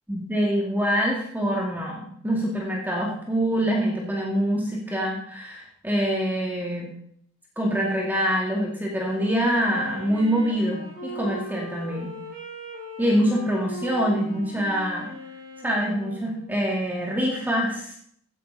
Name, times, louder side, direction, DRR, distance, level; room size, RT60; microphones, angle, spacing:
voice 1, 0.1-6.9 7.6-12.2 13.0-15.1 15.6-18.0, equal, 10° right, -2 dB, 2.4 m, -25 dB
Wind instrument woodwind instrument, 9.1-16.9, right 1 dB, 40° right, 5.5 m, -39 dB
16.0 x 10.0 x 4.1 m, 0.64 s
head